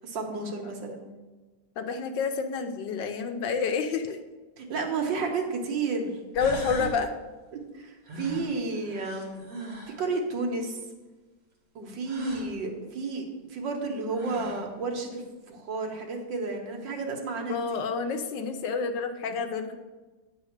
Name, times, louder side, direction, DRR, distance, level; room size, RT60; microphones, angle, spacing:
voice 1, 0.0-1.0 4.6-6.2 6.8-6.9 7.5-9.4 10.0-10.8 11.8-17.8, right 3 dB, 75° right, 2 dB, 1.9 m, -32 dB
voice 2, 1.8-4.2 6.3-7.1 17.5-19.8, left 5 dB, 75° left, 6 dB, 1.4 m, -29 dB
sound 1, 5.9-6.0 6.4-7.0 8.1-10.0 12.1-12.5 13.7-13.8 14.1-14.7, right 1 dB, 50° right, 2.1 m, -38 dB
9.4 x 4.1 x 6.5 m, 1.2 s
omnidirectional pair, 2.0 m